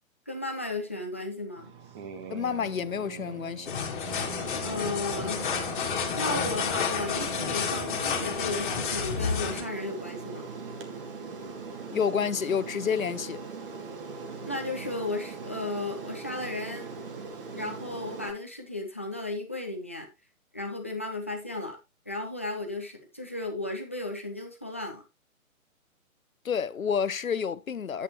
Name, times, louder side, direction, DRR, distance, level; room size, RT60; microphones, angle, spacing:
voice 1, 0.3-1.7 4.6-5.5 6.2-10.5 14.5-16.9 17.6-20.1 20.5-21.8 22.1-25.0, left 2 dB, 10° left, 0.5 m, -34 dB
sound 1, 1.6-10.9, right 6 dB, 20° right, 1.0 m, -48 dB
voice 2, 2.3-3.7 11.9-13.4 26.4-28.0, left 7 dB, 70° left, 0.8 m, -29 dB
sound 2, 3.6-9.6, left 6 dB, 35° left, 2.1 m, -30 dB
Aircraft, 4.1-18.3, right 4 dB, 40° right, 2.0 m, -40 dB
10.0 x 8.2 x 3.0 m
figure-of-eight pair, 135°, 42 cm